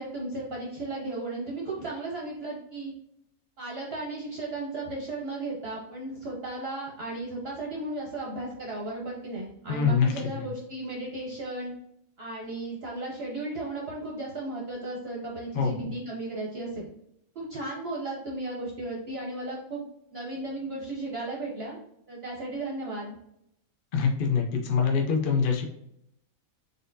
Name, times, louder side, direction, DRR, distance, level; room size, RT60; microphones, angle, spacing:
voice 1, 0.0-2.9 3.6-11.7 12.2-16.9 17.3-19.8 20.1-21.8 22.1-23.2, right 2 dB, 55° right, -3 dB, 0.9 m, -35 dB
voice 2, 9.7-10.1 15.6-15.7 23.9-25.7, left 6 dB, 50° left, 2 dB, 0.6 m, -24 dB
4.0 x 3.4 x 2.6 m, 0.77 s
omnidirectional pair, 1.5 m